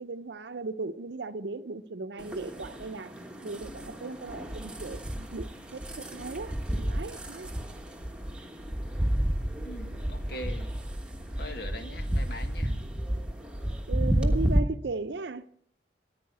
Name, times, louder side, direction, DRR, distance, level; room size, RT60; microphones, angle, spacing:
voice 1, 0.0-3.1 3.4-7.5 13.9-15.5, right 3 dB, 75° right, 0.7 m, -37 dB
sound 1, 2.2-14.6, equal, 5° right, 1.3 m, -31 dB
voice 2, 9.6-10.7 11.4-12.8, left 1 dB, 60° left, 1.7 m, -41 dB
14.5 x 9.9 x 8.4 m
head